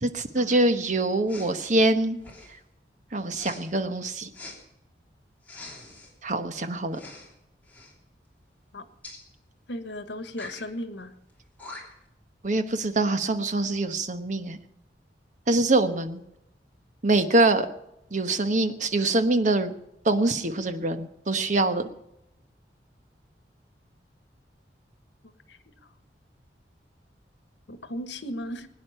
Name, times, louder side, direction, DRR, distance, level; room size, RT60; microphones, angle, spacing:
voice 1, 0.0-2.2 3.1-4.3 6.2-7.0 12.4-14.6 15.5-16.2 17.0-17.7 18.1-19.7 20.0-21.9, right 2 dB, 45° right, 9 dB, 1.1 m, -24 dB
Respiratory sounds, 1.3-1.5 2.2-2.6 3.3-3.6 4.3-4.6 5.4-6.1 6.9-7.3 7.6-7.9 9.0-9.2 10.3-10.6 11.3-11.4 11.6-12.1, left 2 dB, 10° left, 3.4 m, -43 dB
voice 2, 9.7-11.1 25.5-25.6 27.7-28.7, left 1 dB, 85° left, 10 dB, 1.4 m, -36 dB
21.5 x 9.6 x 5.7 m, 0.86 s
head